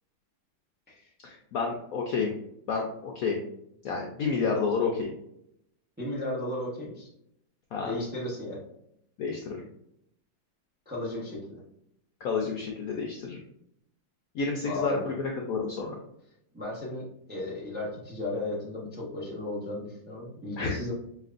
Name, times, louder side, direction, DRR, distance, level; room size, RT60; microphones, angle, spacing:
voice 1, 1.2-2.3 2.7-3.4 3.8-5.1 7.7-8.0 9.2-9.6 12.2-13.4 14.3-16.0 20.6-20.8, left 4 dB, 70° left, 0 dB, 0.8 m, -30 dB
voice 2, 6.0-7.1 7.8-8.6 10.9-11.6 14.6-15.0 16.5-20.9, left 2 dB, 10° right, -4 dB, 0.5 m, -35 dB
5.0 x 2.9 x 2.5 m, 0.76 s
omnidirectional pair, 2.0 m